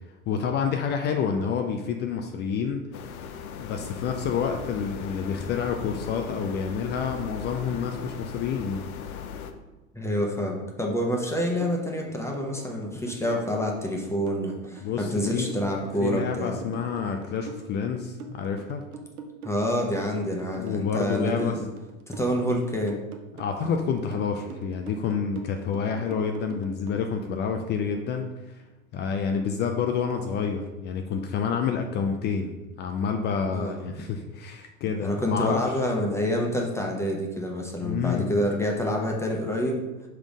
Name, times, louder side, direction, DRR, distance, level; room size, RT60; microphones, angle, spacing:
voice 1, 0.3-2.8 3.5-8.9 14.8-15.5 16.0-18.8 20.6-21.5 23.4-28.6 28.9-32.5 32.8-35.6 37.8-38.3, left 6 dB, 25° left, 5 dB, 0.4 m, -28 dB
sound 1, 2.9-9.5, left 6 dB, 80° left, 0.7 m, -38 dB
voice 2, 9.9-16.6 19.4-21.7 22.1-23.0 33.5-33.9 35.0-39.8, equal, 5° left, 0 dB, 0.9 m, -27 dB
sound 2, 11.6-27.0, right 4 dB, 85° right, 0.8 m, -43 dB
5.4 x 3.7 x 4.9 m, 1.1 s
hypercardioid pair, 95°, 43 cm